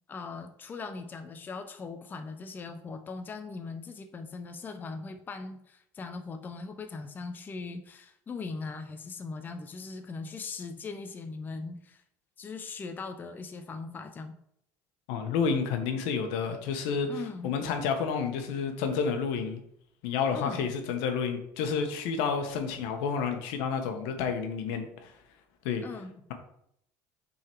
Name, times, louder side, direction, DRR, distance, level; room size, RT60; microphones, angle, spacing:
voice 1, 0.1-12.0 12.4-14.4 17.1-17.5 20.3-20.6 25.8-26.2, left 4 dB, 25° left, 7 dB, 0.5 m, -40 dB
voice 2, 15.1-19.6 20.0-25.1 25.6-25.8, left 6 dB, 80° left, 6 dB, 1.1 m, -30 dB
6.1 x 3.9 x 4.5 m, 0.72 s
cardioid pair, 125°, 8 cm